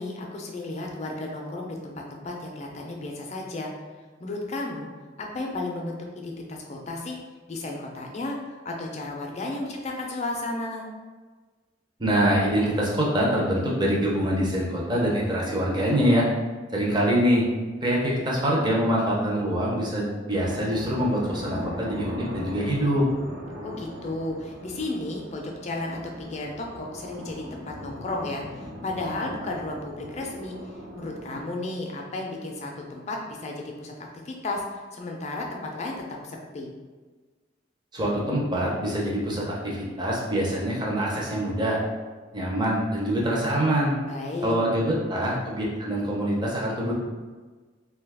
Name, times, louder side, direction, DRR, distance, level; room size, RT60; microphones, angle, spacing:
voice 1, 0.0-3.7 4.2-4.9 5.2-7.2 7.5-8.4 8.6-10.8 23.6-30.6 31.0-33.9 34.3-34.6 34.9-35.9 36.2-36.7 44.0-44.5, left 2 dB, 35° left, 1 dB, 0.4 m, -33 dB
voice 2, 12.0-16.2 16.7-17.4 17.8-23.1 37.9-41.8 42.3-43.9 44.4-46.9, equal, 25° right, -3 dB, 0.6 m, -24 dB
sound 1, 20.3-31.4, equal, 75° right, 1.0 m, -39 dB
2.7 x 2.3 x 3.4 m, 1.4 s
head